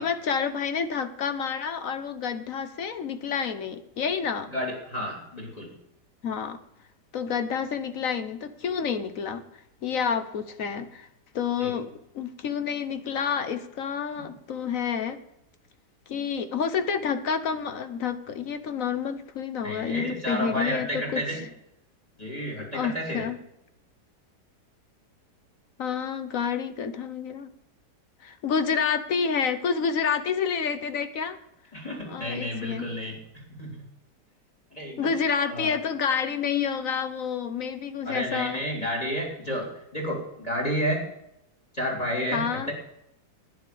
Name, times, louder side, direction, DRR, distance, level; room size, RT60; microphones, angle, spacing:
voice 1, 0.0-4.5 6.2-6.6 7.1-9.4 9.8-11.1 11.3-15.2 16.1-21.2 22.7-23.4 25.8-27.5 28.2-31.4 32.1-32.9 35.0-38.6 42.3-42.7, left 6 dB, 55° left, 11 dB, 1.2 m, -29 dB
voice 2, 4.5-5.7 11.6-11.7 19.6-21.5 22.2-23.3 31.7-33.2 33.6-33.8 34.7-35.2 35.4-35.7 38.0-41.1 41.7-42.7, equal, 20° left, 0 dB, 3.5 m, -31 dB
11.0 x 9.6 x 6.9 m, 0.80 s
omnidirectional pair, 1.8 m